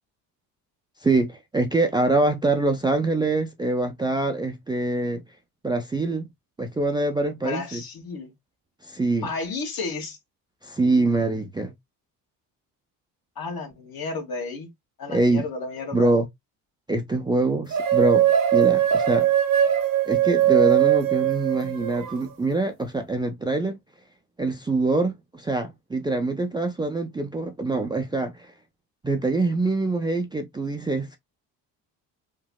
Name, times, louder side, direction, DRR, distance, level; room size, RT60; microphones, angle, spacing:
voice 1, 1.0-5.2 5.6-6.3 6.6-7.8 8.8-9.3 10.6-11.7 15.1-15.5 15.9-16.3 16.9-18.3 18.5-19.3 20.1-23.8 24.4-28.5 29.0-31.2, right 2 dB, 10° right, 0.4 m, -24 dB
voice 2, 7.4-8.3 9.2-10.2 13.4-14.7 15.0-16.1, left 4 dB, 50° left, 1.4 m, -32 dB
sound 1, 17.7-22.2, right 11 dB, 45° right, 0.8 m, -20 dB
3.0 x 2.6 x 2.2 m
supercardioid pair, 65°, 44 cm